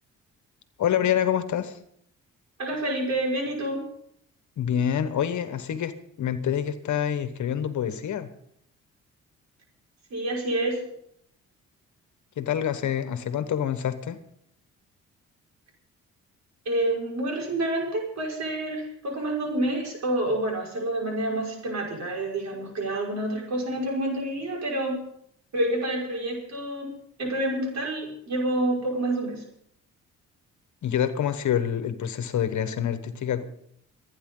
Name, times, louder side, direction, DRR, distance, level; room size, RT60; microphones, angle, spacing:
voice 1, 0.8-1.8 4.6-5.9 6.2-8.3 12.4-14.2 30.8-33.4, left 9 dB, 65° left, 11 dB, 1.3 m, -26 dB
voice 2, 2.6-3.8 10.1-10.8 16.7-25.0 25.5-26.9 27.2-29.4, right 1 dB, 55° right, -1 dB, 5.5 m, -28 dB
29.0 x 9.7 x 3.9 m, 0.72 s
supercardioid pair, 65°, 32 cm